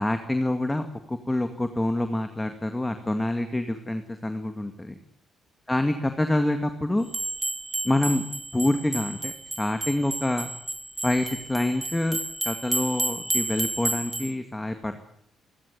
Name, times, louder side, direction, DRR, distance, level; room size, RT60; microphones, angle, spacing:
voice 1, 0.0-5.0 5.7-7.1 7.8-8.3 8.5-10.5 11.0-12.2 12.4-15.0, left 1 dB, 10° left, 7 dB, 2.1 m, -26 dB
sound 1, 7.1-14.3, right 2 dB, 15° right, 1.9 m, -31 dB
28.0 x 12.5 x 9.5 m, 0.70 s
cardioid pair, 90°, 0 cm